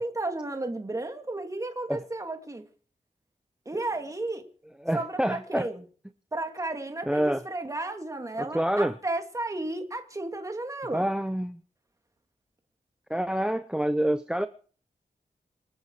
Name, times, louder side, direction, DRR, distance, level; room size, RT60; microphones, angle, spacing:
voice 1, 0.0-2.6 3.7-4.5 4.9-5.8 6.3-11.1, right 2 dB, 20° right, 6 dB, 2.7 m, -33 dB
voice 2, 4.8-5.7 7.1-7.4 8.5-9.0 10.9-11.6 13.1-14.5, right 1 dB, 5° right, 12 dB, 0.8 m, -27 dB
27.5 x 9.9 x 4.9 m, 0.42 s
wide cardioid pair, 145°, 15 cm